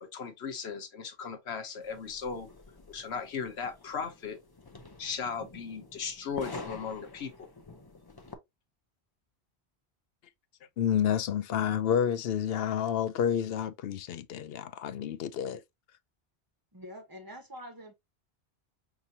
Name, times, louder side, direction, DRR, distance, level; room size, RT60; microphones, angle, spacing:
voice 1, 0.0-2.5 2.9-4.4 5.0-7.5, left 6 dB, 85° left, 1.2 m, -37 dB
sound 1, 1.8-8.3, left 3 dB, 25° left, 0.7 m, -47 dB
voice 2, 10.8-15.6, left 9 dB, 70° left, 0.7 m, -29 dB
voice 3, 16.7-17.9, equal, 20° right, 1.2 m, -45 dB
6.0 x 2.8 x 2.7 m
omnidirectional pair, 1.1 m